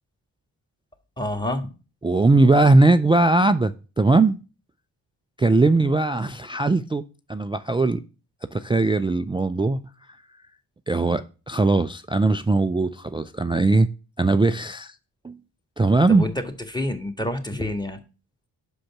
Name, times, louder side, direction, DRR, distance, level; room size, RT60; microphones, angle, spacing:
voice 1, 1.2-1.7 16.1-16.3 16.7-18.0, left 1 dB, 10° left, 1.6 m, -27 dB
voice 2, 2.0-4.4 5.4-7.0 7.3-8.0 8.5-9.8 10.9-13.9 14.2-14.9 15.2-15.4 15.8-16.2, right 2 dB, 10° right, 0.3 m, -19 dB
5.6 x 5.1 x 5.9 m
supercardioid pair, 40°, 45 cm